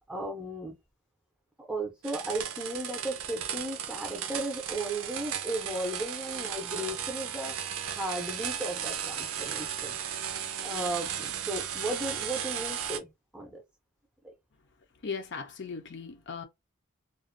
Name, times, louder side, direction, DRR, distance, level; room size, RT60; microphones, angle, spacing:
voice 1, 0.1-0.7 1.6-10.0 10.6-13.6 14.2-14.3, right 1 dB, 5° right, 0.6 m, -35 dB
sound 1, 2.0-13.0, right 8 dB, 75° right, 0.5 m, -35 dB
voice 2, 15.0-16.5, left 5 dB, 50° left, 0.4 m, -38 dB
2.5 x 2.2 x 2.5 m
head